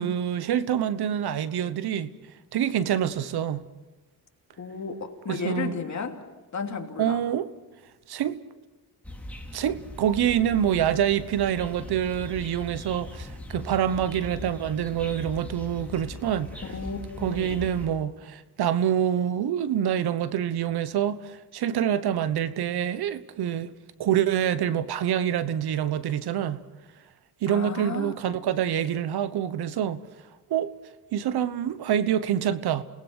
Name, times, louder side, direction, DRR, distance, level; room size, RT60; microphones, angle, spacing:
voice 1, 0.0-2.1 2.5-3.6 5.3-5.7 7.0-7.5 8.1-8.4 9.5-16.5 17.2-23.7 24.0-26.6 27.4-30.0 30.5-30.7 31.1-32.8, right 9 dB, 80° right, 1.2 m, -26 dB
voice 2, 4.6-6.2 6.5-7.2 16.7-17.6 27.5-28.1, left 5 dB, 45° left, 3.0 m, -33 dB
sound 1, 9.0-17.9, left 1 dB, 5° left, 4.0 m, -40 dB
28.5 x 19.5 x 6.4 m
cardioid pair, 80°, 38 cm